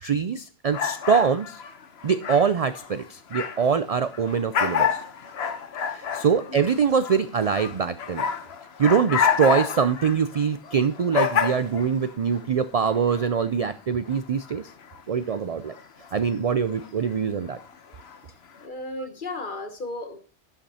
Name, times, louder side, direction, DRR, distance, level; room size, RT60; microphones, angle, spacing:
voice 1, 0.0-1.6 2.0-5.0 5.9-8.3 8.8-14.7 15.1-15.7 16.1-17.6, right 6 dB, 60° right, 12 dB, 0.4 m, -24 dB
sound 1, 0.7-3.8 4.1-12.4 12.8-13.3 14.1-14.2 14.4-15.0 15.7-16.1 16.7-17.1 17.5-18.2, left 7 dB, 65° left, 1.1 m, -28 dB
voice 2, 18.6-20.2, left 2 dB, 45° left, 8 dB, 1.3 m, -34 dB
11.5 x 5.9 x 4.2 m, 0.40 s
omnidirectional pair, 1.2 m